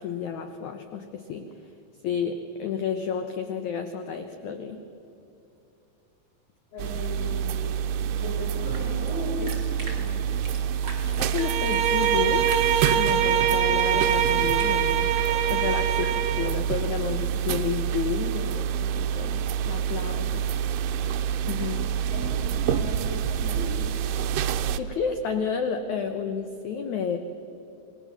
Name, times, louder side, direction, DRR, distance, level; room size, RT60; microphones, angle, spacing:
voice 1, 0.0-1.7 2.0-4.8 11.2-12.6 13.0-20.5 21.5-21.8 22.9-23.0 24.7-27.2, left 6 dB, 65° left, 7 dB, 2.0 m, -31 dB
voice 2, 6.7-10.2 21.6-23.9, left 1 dB, 85° left, -1 dB, 7.5 m, -37 dB
sound 1, 6.8-24.8, right 8 dB, 85° right, 2.8 m, -27 dB
sound 2, 8.3-16.1, right 2 dB, 35° right, 4.0 m, -45 dB
Bowed string instrument, 11.4-16.6, right 9 dB, 65° right, 3.1 m, -24 dB
28.0 x 21.0 x 7.2 m, 2.9 s
omnidirectional pair, 4.5 m